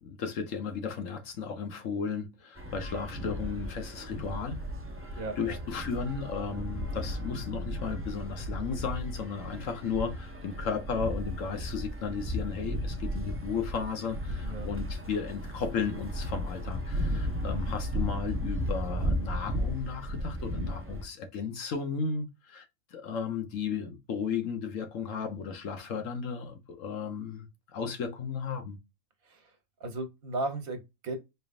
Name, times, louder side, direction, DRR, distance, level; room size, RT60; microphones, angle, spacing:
voice 1, 0.0-4.6 5.4-22.7 22.9-27.5 27.7-28.8, left 6 dB, 65° left, 1.2 m, -34 dB
sound 1, 2.6-21.0, equal, 15° right, 0.5 m, -35 dB
voice 2, 5.1-5.6 6.5-6.6 9.5-9.7 14.4-14.7 29.2-29.5 29.8-31.2, right 2 dB, 75° right, 1.5 m, -36 dB
4.4 x 3.4 x 2.5 m
omnidirectional pair, 1.5 m